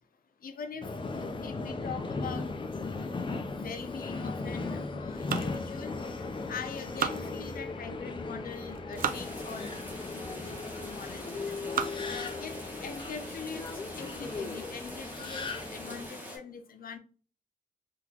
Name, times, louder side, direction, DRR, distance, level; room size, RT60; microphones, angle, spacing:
voice 1, 0.4-0.9 1.1-2.5 2.8-3.1 3.5-5.9 6.5-13.7 13.9-17.0, left 6 dB, 85° left, 0.5 m, -43 dB
Subway metro underground, 0.8-16.1, left 3 dB, 35° left, 0.4 m, -37 dB
sound 1, 5.1-6.3 6.7-7.8 8.5-9.3 9.9-10.0 10.8-11.1 11.5-12.1 12.7-12.8 13.2-13.3 13.7-14.0, right 7 dB, 75° right, 0.4 m, -36 dB
sound 2, 9.0-16.4, equal, 10° right, 0.9 m, -44 dB
3.7 x 2.4 x 2.8 m
wide cardioid pair, 175°, 14 cm